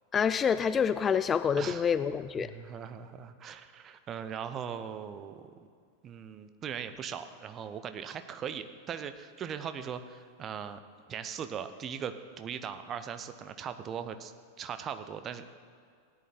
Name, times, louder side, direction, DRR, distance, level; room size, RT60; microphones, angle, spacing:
voice 1, 0.1-2.5, left 7 dB, 20° left, 13 dB, 0.3 m, -27 dB
voice 2, 1.6-1.9 2.4-5.4 6.0-10.8 11.1-14.3 14.6-15.5, right 8 dB, 30° right, 10 dB, 0.8 m, -39 dB
17.0 x 10.5 x 4.4 m, 2.2 s
figure-of-eight pair, 90°, 0 cm